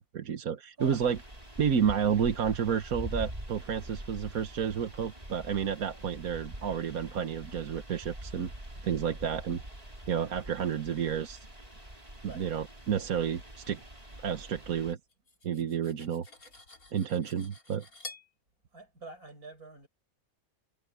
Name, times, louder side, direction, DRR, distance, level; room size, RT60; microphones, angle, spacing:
voice 1, 0.1-1.2 1.6-8.5 8.8-9.6 10.1-11.5 12.2-13.8 14.2-15.0 15.4-16.3 16.9-17.8, right 8 dB, 75° right, 1.6 m, -30 dB
sound 1, 0.8-14.9, right 1 dB, 25° right, 5.2 m, -44 dB
Cutlery silverware, 15.1-18.3, left 3 dB, 75° left, 5.2 m, -49 dB
voice 2, 18.7-19.9, right 3 dB, 90° right, 5.8 m, -46 dB
omnidirectional pair, 1.5 m